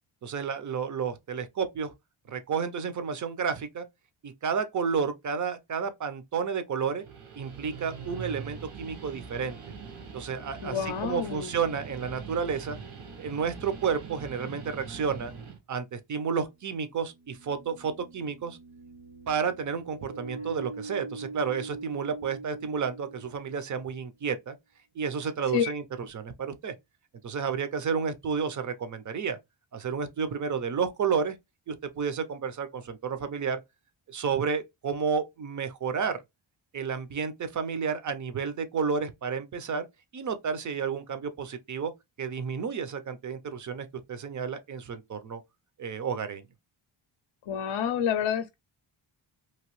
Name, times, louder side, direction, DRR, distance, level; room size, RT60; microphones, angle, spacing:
voice 1, 0.2-1.9 2.3-3.9 4.2-7.0 7.3-9.6 10.1-12.8 13.2-15.3 15.7-18.6 19.3-24.5 25.0-26.7 27.2-29.4 29.7-31.4 31.7-33.6 34.1-36.2 36.7-39.9 40.1-41.9 42.2-45.4 45.8-46.4, right 6 dB, 40° right, 0.5 m, -31 dB
Guitar, 6.9-15.6, right 5 dB, 75° right, 1.3 m, -43 dB
voice 2, 10.6-11.5 25.5-25.7 47.5-48.5, left 8 dB, 60° left, 0.5 m, -28 dB
sound 1, 17.0-23.8, right 3 dB, 60° right, 0.9 m, -43 dB
2.9 x 2.6 x 3.0 m
wide cardioid pair, 165°, 50 cm